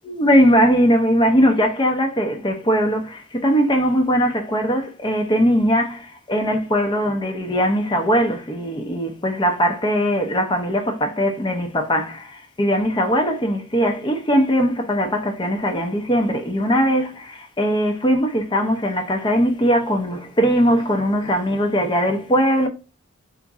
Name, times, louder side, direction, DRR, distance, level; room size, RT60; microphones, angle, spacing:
voice 1, 0.0-22.7, equal, 20° left, 0.6 m, -20 dB
3.5 x 2.5 x 4.0 m
head